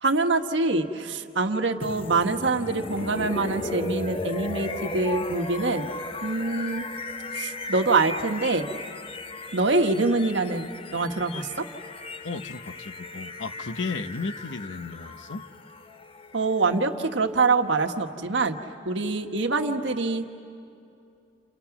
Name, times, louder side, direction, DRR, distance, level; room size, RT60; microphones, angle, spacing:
voice 1, 0.0-5.9 6.2-6.9 7.3-8.7 9.5-11.7 16.3-18.5 18.8-20.3, right 3 dB, 75° right, 5 dB, 1.4 m, -25 dB
sound 1, 1.8-17.7, left 2 dB, 30° left, 0.7 m, -36 dB
voice 2, 12.2-15.4, left 3 dB, 85° left, 10 dB, 0.9 m, -34 dB
29.5 x 29.0 x 6.0 m, 2.6 s
head